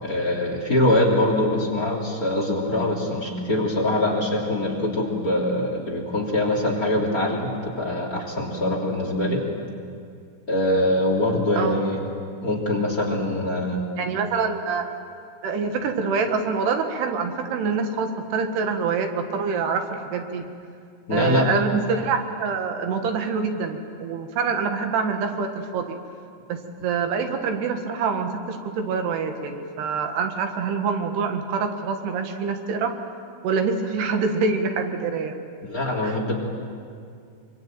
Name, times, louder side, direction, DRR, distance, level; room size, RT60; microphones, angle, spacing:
voice 1, 0.0-9.4 10.5-12.1 12.4-13.8 21.1-21.5 35.6-36.3, left 1 dB, 25° left, 0 dB, 3.4 m, -23 dB
voice 2, 14.0-14.8 15.4-20.4 21.1-26.0 26.5-32.9 33.4-35.3 36.0-36.2, right 5 dB, 85° right, 5 dB, 3.8 m, -25 dB
26.0 x 24.0 x 9.0 m, 2.3 s
omnidirectional pair, 4.6 m